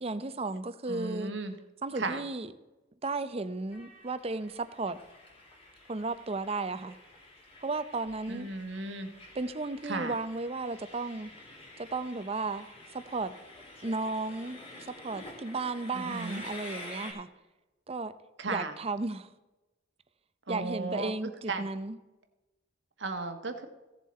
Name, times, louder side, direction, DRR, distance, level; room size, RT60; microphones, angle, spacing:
voice 1, 0.0-1.3 1.8-2.5 3.0-5.0 5.9-7.0 7.6-8.5 9.3-11.3 11.8-12.7 12.9-13.3 13.8-14.6 14.9-17.3 17.9-18.1 18.5-19.3 20.5-22.0, right 3 dB, 35° right, 13 dB, 0.6 m, -34 dB
voice 2, 0.9-1.5 1.9-2.2 8.3-9.1 9.8-10.1 15.9-16.4 18.4-18.8 20.5-21.1 21.5-21.7 23.0-23.7, right 3 dB, 75° right, 7 dB, 1.3 m, -35 dB
Train, 3.7-17.1, left 2 dB, 30° left, 3.3 m, -49 dB
16.0 x 7.2 x 4.3 m, 1.1 s
head